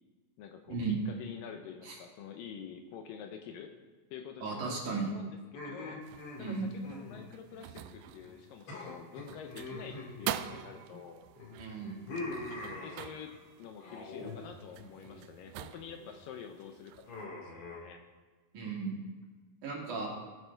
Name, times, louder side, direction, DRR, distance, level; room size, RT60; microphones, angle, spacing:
voice 1, 0.4-3.7 4.1-5.4 5.6-6.0 6.4-11.2 12.6-16.9 17.4-18.0, left 7 dB, 75° left, 5 dB, 2.3 m, -47 dB
voice 2, 4.4-5.1 6.4-6.7 11.6-12.0 18.5-19.0 19.6-20.1, right 4 dB, 60° right, -2 dB, 3.5 m, -35 dB
sound 1, 5.5-8.4 8.7-11.0 11.4-13.4 13.8-14.4 14.7-15.2 15.7-16.1 17.1-17.8, left 2 dB, 45° left, 2.6 m, -44 dB
sound 2, 6.0-17.2, right 12 dB, 85° right, 2.4 m, -45 dB
17.0 x 7.8 x 4.6 m, 1.3 s
omnidirectional pair, 4.3 m